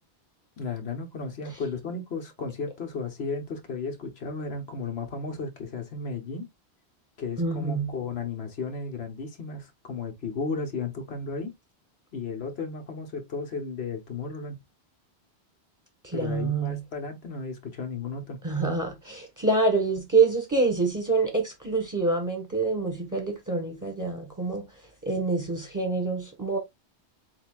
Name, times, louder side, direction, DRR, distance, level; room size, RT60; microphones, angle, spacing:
voice 1, 0.6-6.5 7.2-11.5 12.1-14.6 16.1-18.4, left 4 dB, 65° left, 1.5 m, -34 dB
voice 2, 7.4-7.9 16.0-16.8 18.4-24.6 25.0-26.6, right 3 dB, 15° right, 1.4 m, -26 dB
7.8 x 2.8 x 2.4 m
omnidirectional pair, 1.1 m